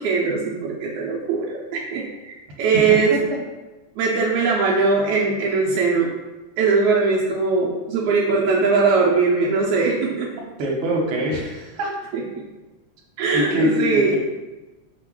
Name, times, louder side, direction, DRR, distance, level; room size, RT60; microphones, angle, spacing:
voice 1, 0.0-3.2 4.0-6.1 6.6-10.3 12.1-12.4 13.2-14.2, right 4 dB, 85° right, -4 dB, 1.3 m, -20 dB
voice 2, 2.7-3.2 10.6-11.9 13.3-14.2, equal, 65° right, -2 dB, 1.3 m, -23 dB
4.9 x 2.2 x 4.5 m, 1.1 s
omnidirectional pair, 3.3 m